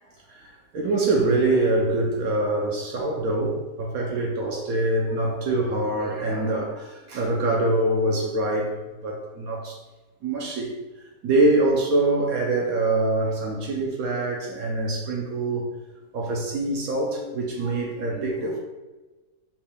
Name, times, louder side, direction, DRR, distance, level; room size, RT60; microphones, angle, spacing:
voice 1, 0.7-8.7 9.0-9.8 10.2-10.7 11.2-15.7 16.1-18.6, right 2 dB, 65° right, 0 dB, 0.9 m, -24 dB
5.5 x 3.4 x 2.2 m, 1.2 s
omnidirectional pair, 1.9 m